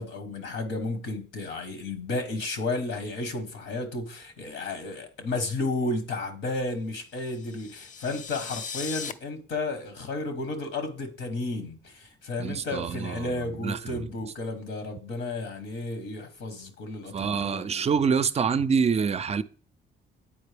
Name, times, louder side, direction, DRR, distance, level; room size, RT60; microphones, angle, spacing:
voice 1, 0.0-17.9, left 2 dB, 75° left, 1.2 m, -33 dB
sound 1, 7.2-9.1, left 6 dB, 40° left, 0.4 m, -38 dB
voice 2, 12.4-14.1 17.1-19.4, right 6 dB, 35° right, 0.4 m, -26 dB
8.7 x 4.3 x 3.4 m
cardioid pair, 90°, 20 cm